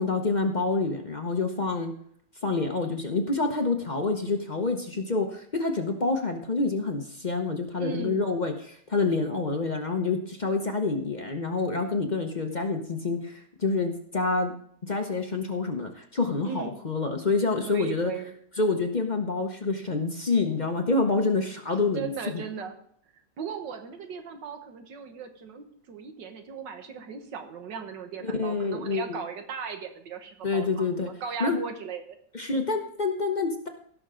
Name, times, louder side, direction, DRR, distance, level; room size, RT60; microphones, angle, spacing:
voice 1, 0.0-1.9 2.4-14.5 14.8-18.1 18.6-22.4 28.2-29.2 30.4-31.1 31.4-31.6 32.3-33.7, left 3 dB, 40° left, 4 dB, 0.7 m, -27 dB
voice 2, 7.8-8.3 16.4-16.8 17.7-18.4 21.9-22.8 23.4-32.2, right 6 dB, 85° right, 6 dB, 1.8 m, -37 dB
17.0 x 6.1 x 3.8 m, 0.65 s
omnidirectional pair, 1.9 m